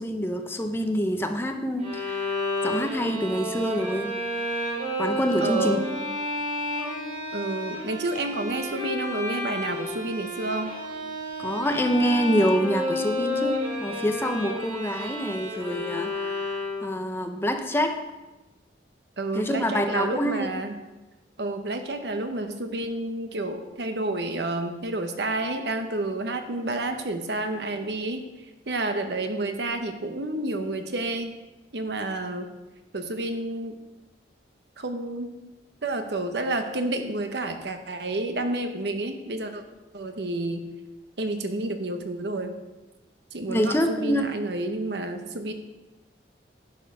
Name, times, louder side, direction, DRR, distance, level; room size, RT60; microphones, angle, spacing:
voice 1, 0.0-2.4 2.6-4.1 5.0-5.8 11.4-18.0 19.3-20.5 43.5-44.4, equal, 15° left, 5 dB, 0.6 m, -26 dB
Bowed string instrument, 1.8-17.1, left 1 dB, 40° right, 2.8 m, -31 dB
voice 2, 5.4-6.0 7.3-10.7 19.2-20.8 21.4-28.3 28.7-31.3 31.7-32.5 32.9-33.8 34.8-35.4 35.8-39.6 39.9-40.7 41.2-42.6 43.3-45.5, right 2 dB, 65° right, 7 dB, 0.9 m, -30 dB
10.5 x 5.4 x 5.5 m, 1.1 s
head